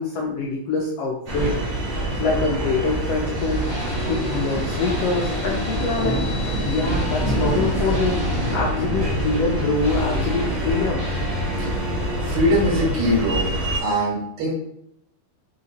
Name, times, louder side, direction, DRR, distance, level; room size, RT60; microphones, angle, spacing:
voice 1, 0.0-1.5 2.2-3.6 4.1-6.2 6.6-11.1 13.9-14.0, left 3 dB, 80° left, -2 dB, 1.4 m, -25 dB
sound 1, 1.3-13.8, right 1 dB, 60° right, 1.3 m, -26 dB
sound 2, 3.3-8.6, left 1 dB, 40° right, 0.8 m, -31 dB
sound 3, 3.7-12.4, left 2 dB, 30° left, 1.0 m, -33 dB
voice 2, 12.2-13.5 13.8-14.5, equal, 75° right, -3 dB, 2.7 m, -22 dB
5.0 x 2.8 x 2.7 m, 0.71 s
omnidirectional pair, 3.3 m